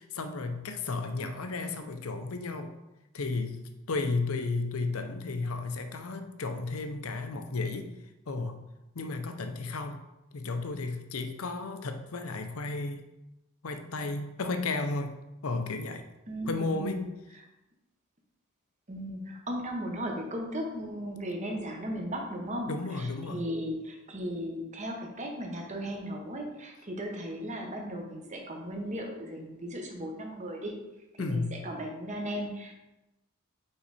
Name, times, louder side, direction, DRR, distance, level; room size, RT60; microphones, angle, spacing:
voice 1, 0.0-2.7 3.1-3.6 3.9-7.9 8.3-8.5 8.9-10.0 10.3-13.0 13.6-15.2 15.4-16.0 16.5-17.0 22.7-23.4 31.2-31.5, left 3 dB, 80° left, 7 dB, 0.7 m, -33 dB
voice 2, 16.3-17.0 18.9-30.7 31.1-32.7, equal, 35° right, 2 dB, 1.1 m, -36 dB
5.6 x 4.6 x 4.2 m, 0.97 s
head